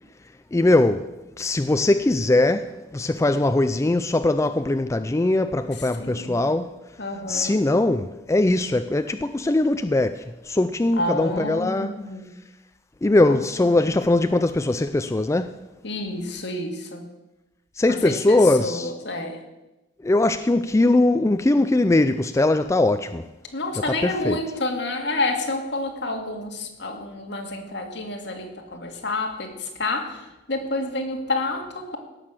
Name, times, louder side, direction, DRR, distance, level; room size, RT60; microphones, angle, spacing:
voice 1, 0.5-1.1 1.4-6.8 7.3-12.0 13.0-15.6 17.8-18.9 20.0-23.3 24.0-24.4, left 2 dB, 15° left, 0.4 m, -21 dB
voice 2, 5.7-6.4 7.0-7.6 11.0-12.3 13.3-13.7 15.8-17.0 17.9-19.4 23.5-32.0, left 2 dB, 65° left, 2.2 m, -29 dB
17.0 x 6.6 x 7.4 m
head